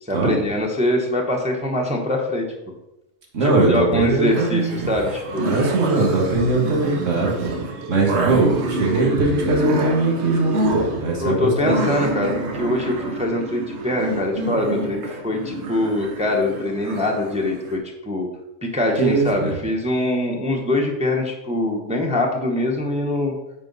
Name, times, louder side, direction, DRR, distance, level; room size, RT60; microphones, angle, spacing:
voice 1, 0.0-2.4 3.4-5.5 11.2-18.3 18.6-23.3, left 1 dB, 5° right, 0 dB, 0.8 m, -23 dB
voice 2, 3.3-4.9 5.4-7.5 7.9-11.7 19.0-19.5, right 3 dB, 90° right, -1 dB, 1.9 m, -21 dB
sound 1, 4.3-17.8, right 2 dB, 65° right, 1.1 m, -27 dB
8.8 x 4.5 x 4.0 m, 0.93 s
omnidirectional pair, 1.3 m